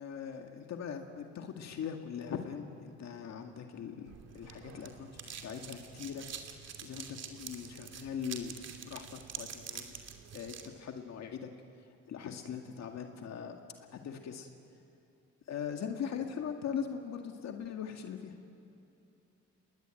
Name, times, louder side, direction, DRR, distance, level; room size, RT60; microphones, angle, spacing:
voice 1, 0.0-6.3 6.8-10.0 10.3-11.5 11.8-13.6 13.9-14.5 15.5-18.4, left 7 dB, 65° left, 4 dB, 2.0 m, -41 dB
sound 1, 4.1-10.7, right 7 dB, 60° right, 2.9 m, -46 dB
29.5 x 21.0 x 9.0 m, 2.8 s
cardioid pair, 105°, 29 cm